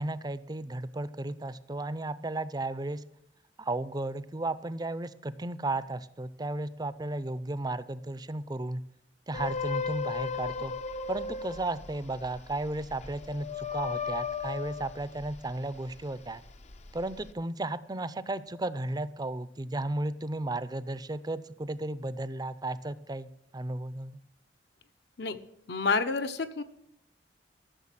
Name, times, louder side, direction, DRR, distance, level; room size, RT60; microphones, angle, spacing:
voice 1, 0.0-3.0 3.6-8.8 9.3-10.7 11.1-16.4 16.9-24.2, right 2 dB, 25° right, 15 dB, 0.6 m, -34 dB
sound 1, 9.3-16.0 16.4-17.3, left 5 dB, 40° left, 0.6 m, -36 dB
voice 2, 25.7-26.6, left 4 dB, 65° left, 8 dB, 1.0 m, -29 dB
13.5 x 6.8 x 7.4 m, 0.78 s
head